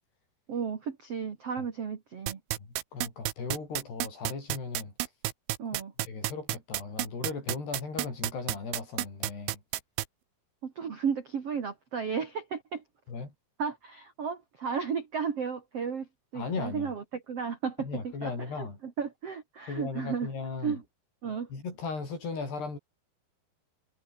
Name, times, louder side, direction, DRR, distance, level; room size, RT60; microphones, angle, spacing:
voice 1, 0.5-2.4 5.6-5.9 10.6-12.8 13.6-20.3 20.6-20.8 21.2-21.5, right 6 dB, 50° right, 1.9 m, -34 dB
sound 1, 2.3-10.0, right 16 dB, 75° right, 3.3 m, -30 dB
voice 2, 2.6-4.9 6.1-9.6 13.1-13.3 16.4-16.9 17.8-18.8 19.7-20.8 21.5-22.8, left 4 dB, 50° left, 9.4 m, -37 dB
omnidirectional pair, 6.0 m